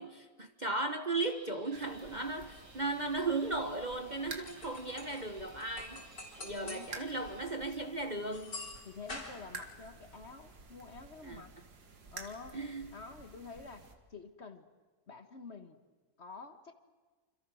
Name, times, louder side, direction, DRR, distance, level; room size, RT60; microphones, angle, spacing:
voice 1, 0.0-6.1 6.4-8.6 11.2-11.4 12.5-13.0, right 2 dB, 30° right, 1.1 m, -36 dB
sound 1, 1.2-7.4, right 1 dB, 50° right, 4.4 m, -58 dB
sound 2, 1.7-13.9, right 4 dB, 80° right, 2.4 m, -52 dB
sound 3, 4.4-5.2 5.6-6.9 7.2-7.3 8.3-9.9, left 2 dB, 65° left, 4.5 m, -46 dB
voice 2, 6.5-7.0 8.8-11.5 12.1-12.6 12.9-14.6 15.1-15.8 16.2-16.7, left 4 dB, 45° left, 1.6 m, -48 dB
27.5 x 26.5 x 6.3 m
omnidirectional pair, 1.7 m